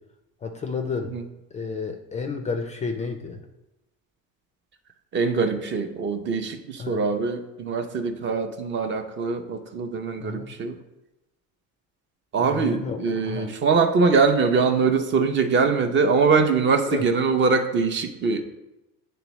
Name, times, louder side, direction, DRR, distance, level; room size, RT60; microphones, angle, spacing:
voice 1, 0.4-1.1 1.5-3.4 6.8-7.0 10.2-10.5 12.4-13.5 16.9-17.0, left 4 dB, 20° left, 5 dB, 0.3 m, -31 dB
voice 2, 5.1-10.8 12.3-18.4, right 4 dB, 35° right, 7 dB, 0.5 m, -23 dB
10.0 x 3.4 x 3.0 m, 0.97 s
cardioid pair, 150°, 33 cm